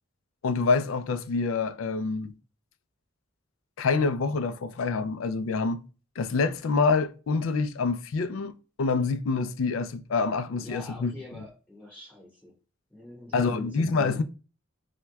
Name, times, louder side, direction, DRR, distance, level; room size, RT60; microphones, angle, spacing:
voice 1, 0.4-2.3 3.8-5.9 6.2-8.5 8.8-11.1 13.3-14.2, left 4 dB, 85° left, 0.4 m, -26 dB
voice 2, 10.6-12.5 12.9-14.2, left 2 dB, 10° left, 2.0 m, -44 dB
5.7 x 2.2 x 2.3 m
head